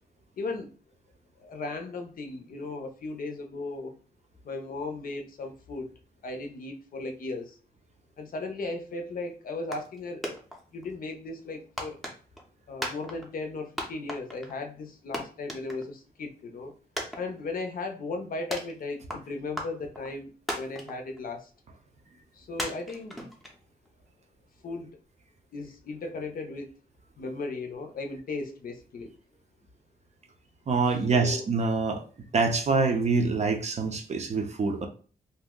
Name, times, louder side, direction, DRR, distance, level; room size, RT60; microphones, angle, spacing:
voice 1, 0.4-0.7 1.4-4.0 4.4-5.9 6.2-7.6 8.2-10.2 10.7-12.0 12.7-16.7 17.2-21.5 22.3-23.2 24.6-25.0 25.5-26.7 27.2-29.1 31.1-31.4, left 3 dB, 60° left, 5 dB, 0.6 m, -36 dB
sound 1, 9.7-10.0 10.2-10.9 11.8-12.5 12.8-13.5 13.8-14.6 14.9-15.0 15.1-16.1 16.4-16.5 17.0-17.7 18.5-19.2 19.6-20.1 20.5-21.2 21.6-21.7 22.6-23.9, equal, ahead, 0.6 m, -35 dB
voice 2, 30.7-32.0 32.3-34.9, right 4 dB, 45° right, 5 dB, 0.5 m, -25 dB
2.6 x 2.0 x 3.6 m, 0.39 s
wide cardioid pair, 150°, 17 cm